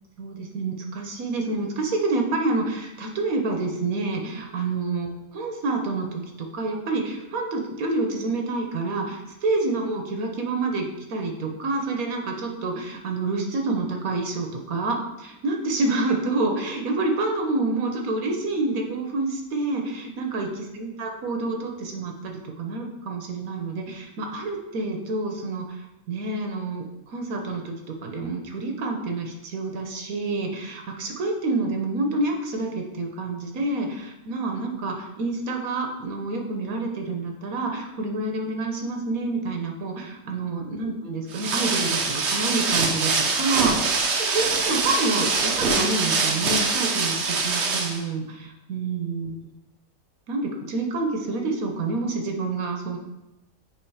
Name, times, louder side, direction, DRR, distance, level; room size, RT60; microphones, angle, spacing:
voice 1, 0.2-5.1 5.3-25.8 26.1-49.3 50.3-53.0, right 3 dB, 75° right, 3 dB, 1.4 m, -28 dB
sound 1, 41.3-48.0, right 4 dB, 55° right, 1.0 m, -24 dB
7.5 x 3.2 x 4.8 m, 0.95 s
omnidirectional pair, 1.5 m